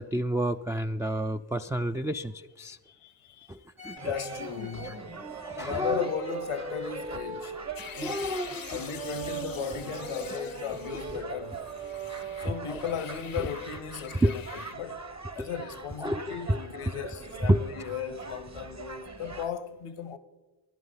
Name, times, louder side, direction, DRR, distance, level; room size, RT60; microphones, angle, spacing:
voice 1, 0.0-2.8 3.5-4.0 4.8-6.1 7.8-8.8 11.1-11.2 12.7-12.8 13.4-13.5 14.2-14.3 15.4-15.5 16.0-16.6 17.4-17.6, right 1 dB, 5° right, 0.3 m, -30 dB
voice 2, 2.8-3.6 4.0-5.0 5.5-7.6 7.9-8.3 8.7-11.6 12.4-15.0 15.3-20.2, left 8 dB, 80° left, 0.9 m, -36 dB
sound 1, 3.8-13.1, right 4 dB, 80° right, 2.3 m, -40 dB
sound 2, 4.0-19.5, right 5 dB, 35° right, 1.1 m, -43 dB
sound 3, 7.8-11.2 11.5-14.8, left 9 dB, 45° left, 0.6 m, -46 dB
16.5 x 11.0 x 3.9 m
cardioid pair, 45°, 49 cm